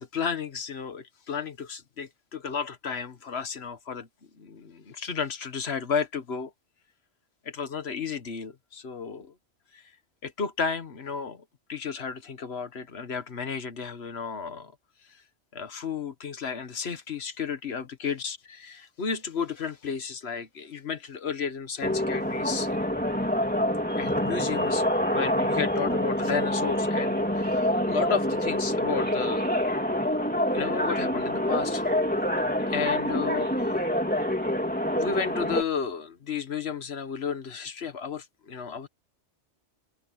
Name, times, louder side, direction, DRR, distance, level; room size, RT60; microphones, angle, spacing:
voice 1, 0.0-4.1 4.4-6.5 7.4-9.3 9.7-9.8 10.2-11.4 11.7-14.7 15.5-22.7 24.0-29.5 30.5-32.0 32.7-33.8 35.0-38.9, left 6 dB, 60° left, 1.6 m, -33 dB
sound 1, 21.8-35.6, left 1 dB, 5° left, 2.9 m, -26 dB
open air
omnidirectional pair, 1.3 m